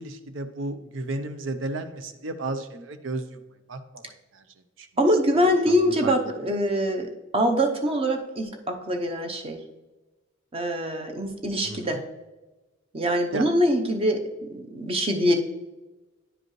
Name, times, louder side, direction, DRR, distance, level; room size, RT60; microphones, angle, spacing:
voice 1, 0.0-3.4 3.7-4.4 4.8-4.9 5.4-6.1 11.6-12.0 13.3-13.5, right 2 dB, 85° right, 9 dB, 0.6 m, -34 dB
voice 2, 5.0-9.6 10.5-12.0 12.9-14.2 14.5-15.3, equal, 30° right, 5 dB, 0.8 m, -24 dB
9.8 x 5.1 x 3.1 m, 1.1 s
head